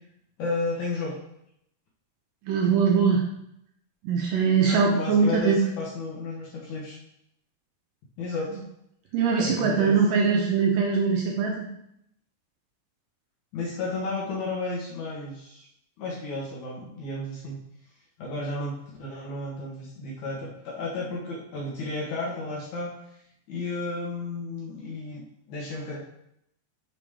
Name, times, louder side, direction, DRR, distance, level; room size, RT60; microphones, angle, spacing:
voice 1, 0.4-1.1 4.6-7.0 8.2-8.5 9.4-10.0 13.5-15.7 16.0-17.6 18.2-18.7 19.0-22.9 23.5-25.2 25.5-26.0, left 3 dB, 60° left, -4 dB, 2.3 m, -32 dB
voice 2, 2.5-3.2 4.0-5.6 9.1-11.7, right 5 dB, 75° right, -1 dB, 2.2 m, -22 dB
6.9 x 6.0 x 3.6 m, 0.76 s
omnidirectional pair, 4.6 m